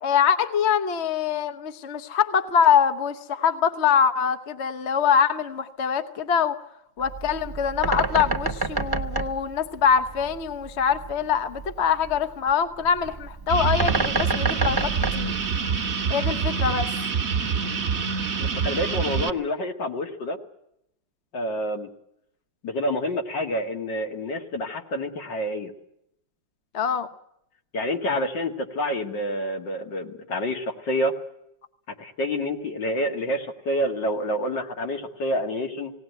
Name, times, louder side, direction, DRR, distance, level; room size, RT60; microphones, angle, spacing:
voice 1, 0.0-6.6 7.0-15.4 16.1-16.9 26.7-27.1, left 7 dB, 45° left, 10 dB, 1.1 m, -24 dB
Bird, 7.0-16.1, right 3 dB, 20° right, 0.6 m, -30 dB
sound 1, 13.5-19.3, right 6 dB, 40° right, 1.3 m, -26 dB
voice 2, 18.4-20.4 21.3-21.9 22.6-25.7 27.7-31.1 32.0-35.9, equal, 70° left, 4 dB, 2.7 m, -28 dB
19.0 x 18.0 x 9.3 m, 0.78 s
omnidirectional pair, 2.0 m